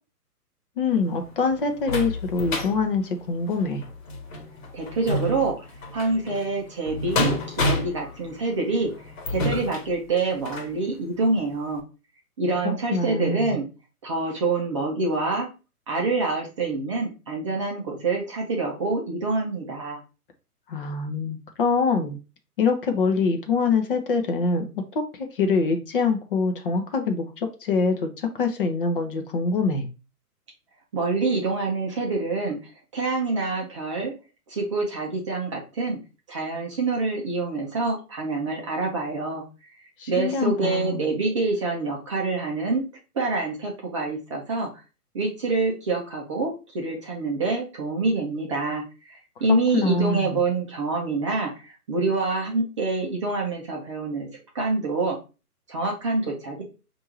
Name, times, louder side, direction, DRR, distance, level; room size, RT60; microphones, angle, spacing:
voice 1, 0.8-3.9 12.6-13.6 20.7-22.2 22.6-24.7 24.9-29.9 40.0-41.1 49.7-50.4, left 4 dB, 35° left, 5 dB, 0.7 m, -24 dB
sound 1, 0.9-10.8 11.3-11.4 11.8-11.9, left 2 dB, 55° left, 1.3 m, -30 dB
voice 2, 4.7-5.7 5.9-11.8 12.4-13.6 14.0-15.5 15.9-20.0 30.9-34.1 34.5-36.0 36.3-39.4 39.7-42.9 43.1-44.8 45.1-54.3 54.5-55.2 55.7-56.6, right 3 dB, 20° right, -1 dB, 0.5 m, -26 dB
5.4 x 2.6 x 3.0 m, 0.32 s
figure-of-eight pair, 125°, 47 cm